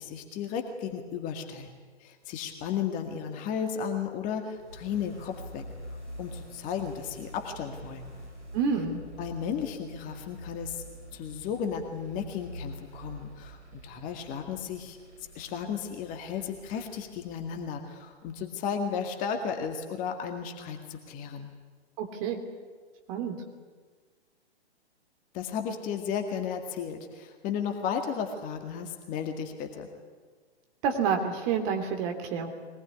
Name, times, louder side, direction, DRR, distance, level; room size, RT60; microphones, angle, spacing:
voice 1, 0.0-5.7 6.2-8.1 9.2-10.8 11.1-15.0 15.4-21.5 25.3-29.9, left 7 dB, 25° left, 4 dB, 2.0 m, -34 dB
sound 1, 4.5-18.4, equal, 90° right, 5.5 m, -46 dB
voice 2, 8.5-9.0 22.0-22.4 23.1-23.3 30.8-32.5, right 6 dB, 30° right, 5 dB, 3.1 m, -28 dB
22.5 x 19.5 x 9.8 m, 1.5 s
figure-of-eight pair, 125°, 33 cm